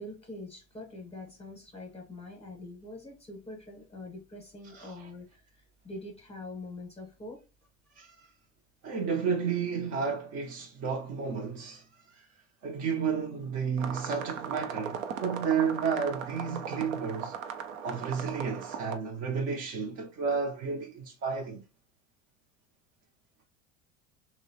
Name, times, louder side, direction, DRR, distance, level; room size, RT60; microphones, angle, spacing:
voice 1, 0.0-5.4 5.8-7.5, left 2 dB, 15° left, 0.7 m, -44 dB
voice 2, 4.7-5.1 8.0-8.3 8.8-12.3 12.6-17.4 17.8-21.6, right 6 dB, 40° right, 0.5 m, -32 dB
sound 1, 13.8-19.0, right 7 dB, 85° right, 0.6 m, -38 dB
2.9 x 2.0 x 2.6 m
hypercardioid pair, 90°, 39 cm